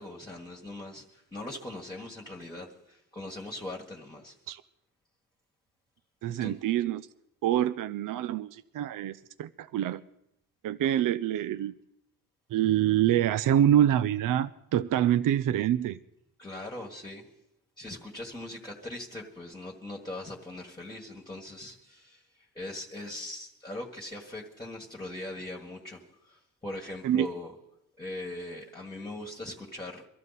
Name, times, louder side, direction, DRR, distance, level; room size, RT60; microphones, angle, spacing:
voice 1, 0.0-4.3 6.3-6.6 16.4-17.2 17.8-22.2 22.5-27.5 28.0-30.0, left 1 dB, 15° left, -1 dB, 1.6 m, -40 dB
voice 2, 6.2-7.1 7.4-10.0 10.6-11.7 12.5-16.0 27.0-27.3, right 11 dB, 70° right, 12 dB, 0.5 m, -26 dB
24.0 x 14.0 x 4.1 m, 0.83 s
wide cardioid pair, 170°, 34 cm